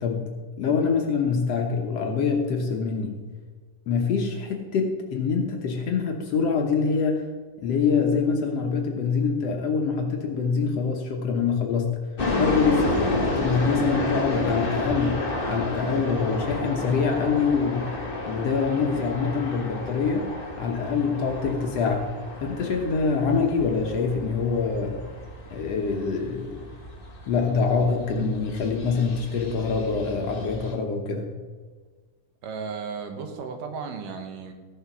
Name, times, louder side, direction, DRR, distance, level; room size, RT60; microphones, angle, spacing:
voice 1, 0.6-3.1 3.9-7.2 7.6-12.0 12.4-15.2 15.5-17.9 18.3-20.3 20.6-22.0 22.4-25.0 25.5-26.6 27.3-31.3, left 5 dB, 60° left, 2 dB, 1.9 m, -25 dB
sound 1, 12.2-30.7, left 2 dB, 40° left, 0.8 m, -31 dB
voice 2, 32.4-34.5, right 5 dB, 75° right, 6 dB, 2.8 m, -34 dB
14.5 x 7.3 x 6.0 m, 1.4 s
omnidirectional pair, 3.8 m